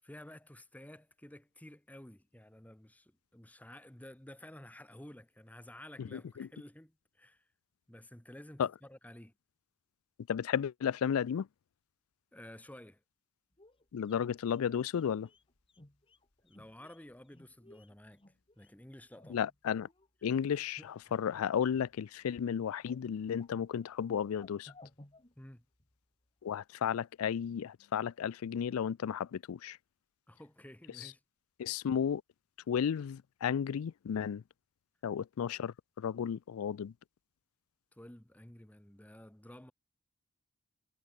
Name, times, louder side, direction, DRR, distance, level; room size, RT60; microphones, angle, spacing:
voice 1, 0.0-7.5 7.9-9.3 12.3-13.0 16.4-18.2 18.6-19.4 20.2-20.9 25.4-25.6 30.3-31.2 37.9-39.7, left 1 dB, 5° left, 0.9 m, -52 dB
voice 2, 6.1-6.5 8.6-8.7 10.3-11.5 13.9-15.3 19.3-19.9 20.2-24.7 26.4-29.8 31.0-31.1 31.6-32.2 32.7-34.4 35.0-36.9, left 8 dB, 90° left, 0.4 m, -33 dB
sound 1, 13.5-20.1 20.4-21.3 21.6-22.3 22.6-26.0 26.2-26.3, left 1 dB, 25° left, 2.0 m, -61 dB
head